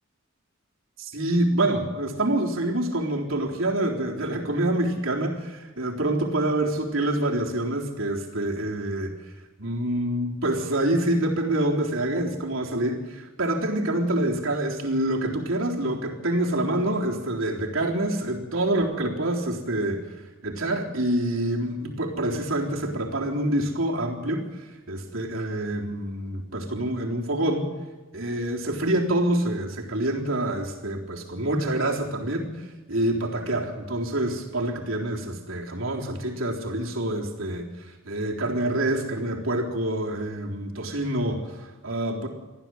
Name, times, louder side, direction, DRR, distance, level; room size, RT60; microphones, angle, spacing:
voice 1, 1.0-9.1 9.6-20.0 20.4-27.7 28.1-42.3, right 1 dB, 70° right, -1 dB, 3.8 m, -26 dB
25.0 x 15.0 x 7.9 m, 1.2 s
head